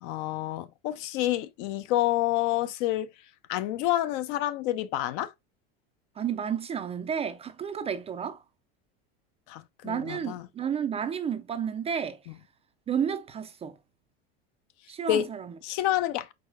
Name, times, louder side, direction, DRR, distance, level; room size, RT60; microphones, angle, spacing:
voice 1, 0.0-3.1 3.5-5.3 9.5-10.4 15.1-15.3 15.6-16.3, left 14 dB, 60° left, 0.6 m, -28 dB
voice 2, 6.2-8.4 9.8-12.2 12.9-13.8 14.9-15.5, right 8 dB, 20° right, 0.3 m, -31 dB
4.8 x 3.6 x 2.3 m
supercardioid pair, 120°, 31 cm